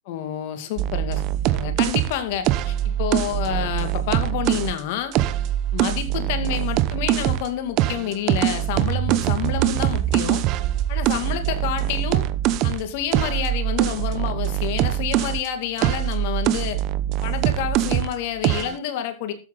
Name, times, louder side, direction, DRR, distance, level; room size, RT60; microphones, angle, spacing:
voice 1, 0.1-5.2 5.7-10.4 10.9-12.3 12.6-16.8 17.2-19.3, left 10 dB, 60° left, 2.3 m, -29 dB
sound 1, 0.8-4.7 5.1-7.5 7.8-15.5 15.8-18.2 18.4-18.8, right 13 dB, 45° right, 0.8 m, -23 dB
13.0 x 8.0 x 3.9 m
supercardioid pair, 125°, 0 cm